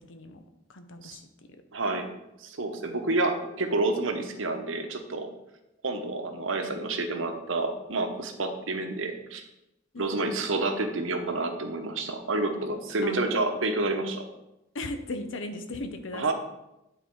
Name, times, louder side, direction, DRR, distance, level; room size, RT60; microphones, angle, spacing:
voice 1, 0.1-0.4 0.7-1.2 9.9-10.4 13.0-13.2 14.7-16.3, left 2 dB, 70° left, 7 dB, 0.7 m, -37 dB
voice 2, 1.7-2.1 2.4-5.3 5.8-9.4 10.0-14.3 16.1-16.3, right 2 dB, 75° right, 6 dB, 0.9 m, -29 dB
9.4 x 3.9 x 4.6 m, 0.90 s
head